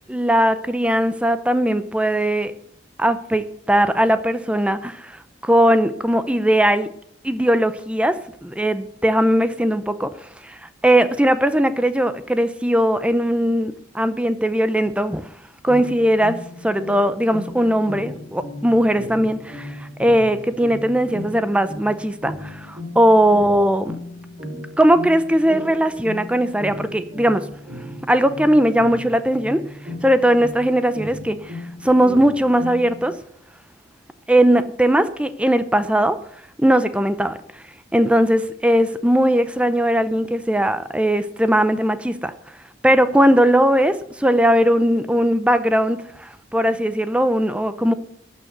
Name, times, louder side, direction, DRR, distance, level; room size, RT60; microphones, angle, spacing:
voice 1, 0.1-2.5 3.0-5.2 5.4-6.9 7.2-8.2 8.4-10.1 10.4-10.6 10.8-15.2 15.6-16.4 16.6-24.0 24.5-27.5 28.1-29.6 30.0-33.1 34.3-36.2 36.6-37.4 37.9-42.3 42.8-47.9, right 1 dB, 5° right, 11 dB, 0.6 m, -19 dB
sound 1, 15.7-33.1, left 1 dB, 35° right, 2.8 m, -36 dB
12.5 x 6.4 x 7.9 m, 0.66 s
head